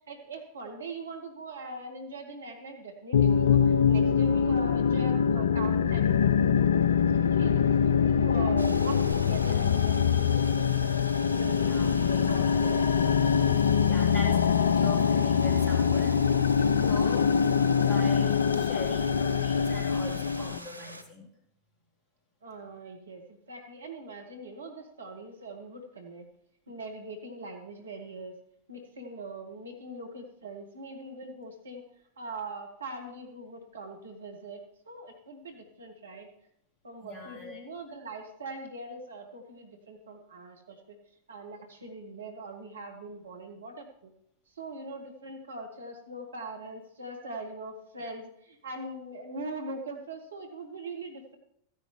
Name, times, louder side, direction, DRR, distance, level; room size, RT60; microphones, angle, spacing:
voice 1, 0.0-6.1 7.2-10.9 11.3-12.9 22.4-26.2 26.7-28.4 28.7-31.8 32.2-36.3 36.8-41.0 41.3-44.1 44.5-51.4, right 2 dB, 70° right, 3 dB, 1.6 m, -42 dB
sound 1, 3.1-20.6, left 7 dB, 65° left, 0.3 m, -24 dB
sound 2, 8.6-21.0, right 1 dB, 90° left, 0.8 m, -44 dB
voice 2, 11.5-12.7 13.6-16.2 16.6-17.3 17.8-21.3 37.0-37.6, left 2 dB, 20° left, -3 dB, 3.6 m, -41 dB
14.5 x 10.0 x 3.2 m, 0.72 s
figure-of-eight pair, 90°, 0 cm